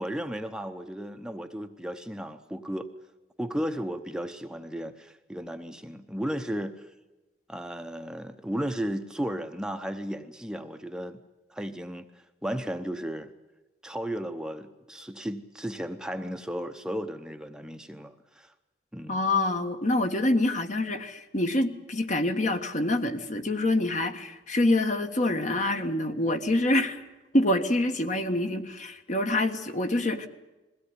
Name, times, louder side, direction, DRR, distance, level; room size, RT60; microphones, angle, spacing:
voice 1, 0.0-2.9 3.4-6.9 7.5-11.2 11.5-12.1 12.4-13.3 13.8-18.5 18.9-19.2, equal, 5° right, 7 dB, 0.8 m, -34 dB
voice 2, 19.1-27.0 27.3-30.3, left 1 dB, 45° left, 7 dB, 1.5 m, -26 dB
22.0 x 16.5 x 9.8 m, 1.1 s
head